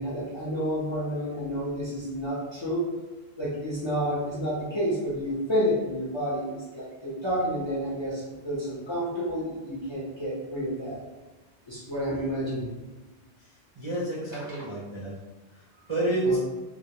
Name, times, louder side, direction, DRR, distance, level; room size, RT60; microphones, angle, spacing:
voice 1, 0.0-2.9 3.4-11.0 11.7-12.7 16.2-16.4, equal, 35° left, -8 dB, 0.5 m, -30 dB
voice 2, 13.8-15.1 15.9-16.4, right 2 dB, 40° right, -9 dB, 0.4 m, -28 dB
2.2 x 2.1 x 2.8 m, 1.2 s
omnidirectional pair, 1.1 m